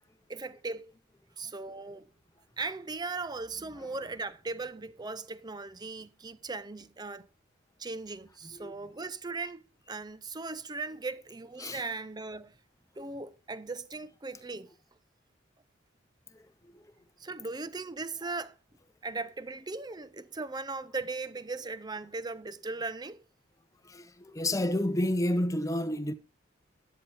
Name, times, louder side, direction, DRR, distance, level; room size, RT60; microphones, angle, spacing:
voice 1, 0.3-0.9 1.4-2.1 2.6-7.3 7.8-9.6 9.9-12.5 13.0-14.7 17.2-18.5 19.0-23.2, right 3 dB, 20° right, 0.6 m, -38 dB
voice 2, 16.3-16.9 23.8-26.1, left 1 dB, 15° left, 0.8 m, -31 dB
13.5 x 9.6 x 3.4 m
head